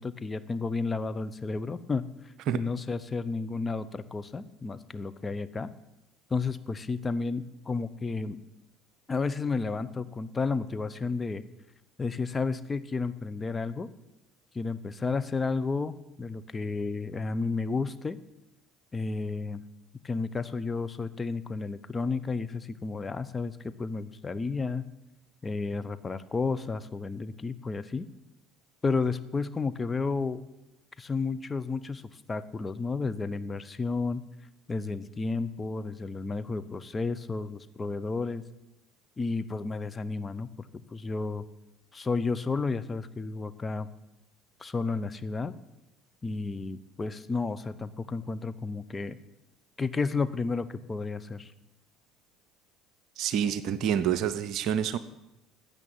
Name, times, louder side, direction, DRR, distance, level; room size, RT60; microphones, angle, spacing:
voice 1, 0.0-2.1 2.5-5.7 6.3-8.4 9.1-11.4 12.0-13.9 14.5-18.2 18.9-19.6 20.0-24.9 25.4-28.1 28.8-30.4 31.0-34.2 34.7-38.4 39.2-40.5 40.9-41.4 41.9-43.9 44.6-45.5 46.2-49.2 49.8-51.5, left 4 dB, 25° left, 12 dB, 0.9 m, -32 dB
voice 2, 53.2-55.0, right 9 dB, 55° right, 12 dB, 0.7 m, -27 dB
12.5 x 8.3 x 9.1 m, 0.92 s
hypercardioid pair, 65°, 0 cm